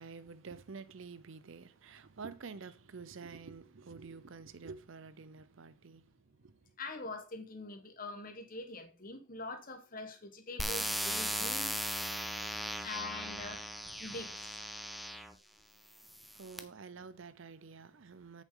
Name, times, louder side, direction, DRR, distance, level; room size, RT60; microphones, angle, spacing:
voice 1, 0.0-6.8 16.0-18.4, right 5 dB, 65° right, 0.6 m, -49 dB
voice 2, 6.8-11.8 12.8-13.6 14.0-14.5, left 3 dB, 40° left, 1.3 m, -44 dB
sound 1, 10.6-15.3 16.0-16.6, equal, ahead, 0.5 m, -37 dB
8.2 x 6.5 x 3.7 m
head